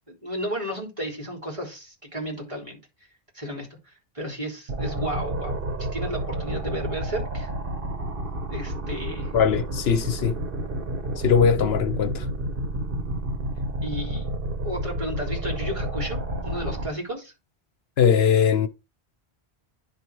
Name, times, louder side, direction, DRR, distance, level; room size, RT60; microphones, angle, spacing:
voice 1, 0.1-2.8 3.3-7.5 8.5-9.3 13.8-14.3 14.6-16.2 16.4-17.3, equal, 30° right, 3.9 m, -33 dB
sound 1, 4.7-16.9, right 1 dB, 60° right, 1.5 m, -30 dB
voice 2, 9.3-10.4 11.2-12.3 18.0-18.7, left 7 dB, 80° left, 1.0 m, -20 dB
10.5 x 4.2 x 4.7 m
omnidirectional pair, 1.0 m